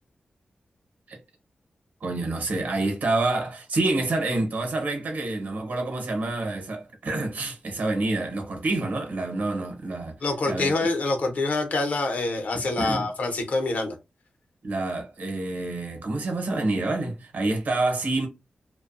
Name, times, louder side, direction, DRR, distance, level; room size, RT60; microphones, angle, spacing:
voice 1, 2.0-10.2 10.5-10.7 12.5-13.1 14.6-18.3, right 2 dB, 70° right, 0.9 m, -27 dB
voice 2, 10.2-14.0, left 2 dB, 65° left, 0.7 m, -26 dB
2.5 x 2.2 x 2.5 m
wide cardioid pair, 125°, 3 cm